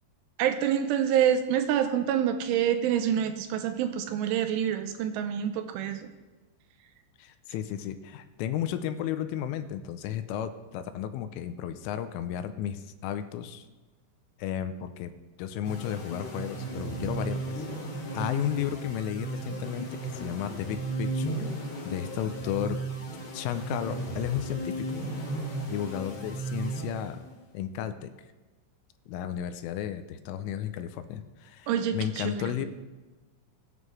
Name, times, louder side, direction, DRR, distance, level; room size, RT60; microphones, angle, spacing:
voice 1, 0.4-6.0 31.7-32.6, right 9 dB, 80° right, 8 dB, 3.1 m, -27 dB
voice 2, 7.2-13.7 14.4-15.1 15.4-17.7 18.1-21.4 21.8-22.8 23.3-24.9 25.7-27.2 27.5-28.1 29.1-32.7, left 10 dB, 85° left, 10 dB, 3.2 m, -33 dB
sound 1, 15.6-27.4, right 2 dB, 50° left, 3.1 m, -35 dB
22.0 x 9.7 x 3.2 m, 1.2 s
omnidirectional pair, 5.8 m